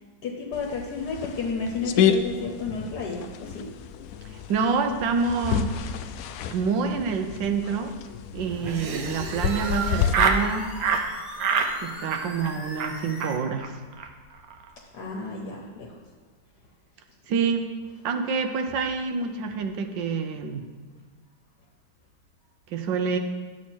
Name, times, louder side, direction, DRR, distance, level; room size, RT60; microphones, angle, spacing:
voice 1, 0.0-3.7 14.9-16.0, left 4 dB, 65° left, 0 dB, 1.4 m, -32 dB
sound 1, 0.5-10.1, left 8 dB, 80° left, 0.7 m, -30 dB
voice 2, 4.3-5.7 6.5-7.9 8.3-10.7 11.8-13.7 17.3-17.7 18.0-20.7 22.7-23.2, right 5 dB, 80° right, 6 dB, 1.5 m, -27 dB
sound 2, 8.4-13.4, equal, ahead, 1.3 m, -41 dB
Laughter, 8.6-10.4 10.8-11.1 11.4-11.7 12.0-12.5 12.8-12.9 13.2-13.3 13.6-13.7 13.9-14.1 14.3-14.7, right 6 dB, 60° right, 1.1 m, -26 dB
10.5 x 7.4 x 4.4 m, 1.4 s
omnidirectional pair, 2.0 m